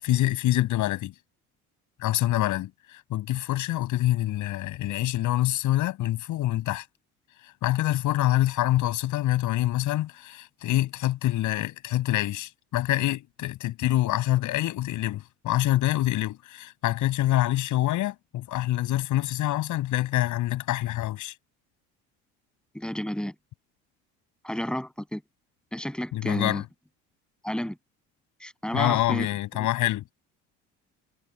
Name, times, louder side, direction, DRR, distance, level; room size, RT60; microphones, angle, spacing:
voice 1, 0.0-1.1 2.0-6.8 7.4-21.3 26.1-26.6 28.7-30.0, left 15 dB, 70° left, 6.4 m, -26 dB
voice 2, 22.7-23.3 24.4-25.2 25.7-26.6 27.4-27.8 28.4-29.3 29.6-29.7, equal, 5° left, 8.0 m, -31 dB
supercardioid pair, 95°, 32 cm